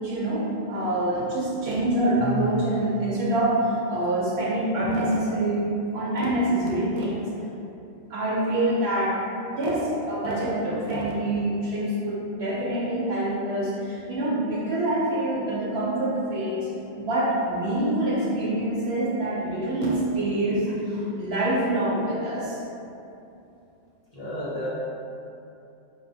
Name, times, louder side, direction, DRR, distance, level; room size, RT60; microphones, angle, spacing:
voice 1, 0.0-7.3 8.1-16.7 17.0-22.6, right 1 dB, 60° right, -5 dB, 0.9 m, -26 dB
voice 2, 24.1-24.7, left 1 dB, 35° left, -10 dB, 0.9 m, -31 dB
5.7 x 2.7 x 2.6 m, 2.8 s
omnidirectional pair, 1.3 m